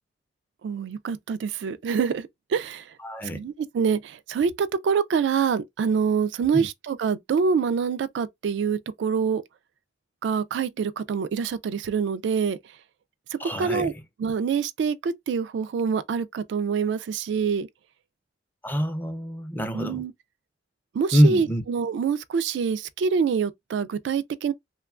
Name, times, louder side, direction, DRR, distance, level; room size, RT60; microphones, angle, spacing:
voice 1, 0.6-2.9 3.3-9.4 10.2-12.6 13.4-13.9 14.2-17.7 19.7-20.1 20.9-24.5, right 6 dB, 75° right, 0.3 m, -26 dB
voice 2, 3.0-3.4 6.5-6.7 13.4-13.9 18.6-20.0 21.1-21.6, equal, 10° left, 0.4 m, -24 dB
2.9 x 2.2 x 2.3 m
head